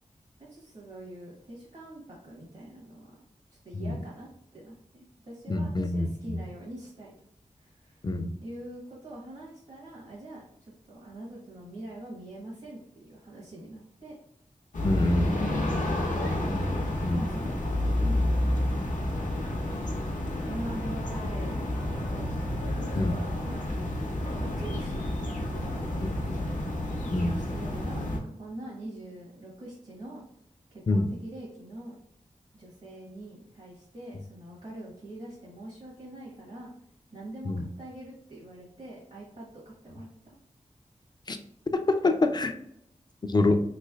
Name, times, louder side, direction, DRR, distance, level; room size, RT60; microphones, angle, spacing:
voice 1, 0.4-3.1 3.6-7.1 7.6-8.1 8.4-14.2 14.9-16.4 17.1-19.2 20.4-22.3 22.7-23.6 24.2-25.1 25.5-26.4 27.0-30.2 30.7-32.0 32.5-36.7 37.1-40.3, right 1 dB, 55° right, -5 dB, 1.1 m, -44 dB
voice 2, 5.5-6.4 8.0-8.3 14.8-15.3 17.0-17.2 23.0-23.2 26.0-26.1 27.1-27.3 30.9-31.1 37.5-37.6 41.3-41.4 41.7-42.5 43.3-43.6, left 2 dB, 35° left, 7 dB, 0.4 m, -25 dB
sound 1, 14.7-28.2, left 1 dB, 75° left, 0.7 m, -30 dB
3.3 x 3.1 x 2.3 m, 0.71 s
wide cardioid pair, 95°, 13 cm